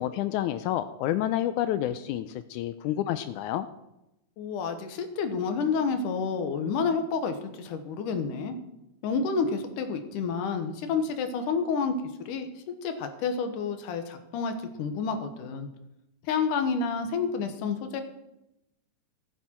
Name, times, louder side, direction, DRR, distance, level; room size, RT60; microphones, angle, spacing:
voice 1, 0.0-3.7, left 12 dB, 85° left, 11 dB, 1.7 m, -29 dB
voice 2, 4.4-8.5 9.0-11.9 12.2-12.5 12.8-15.7 16.2-18.0, left 5 dB, 70° left, 7 dB, 2.5 m, -29 dB
15.0 x 8.9 x 4.4 m, 0.88 s
omnidirectional pair, 4.0 m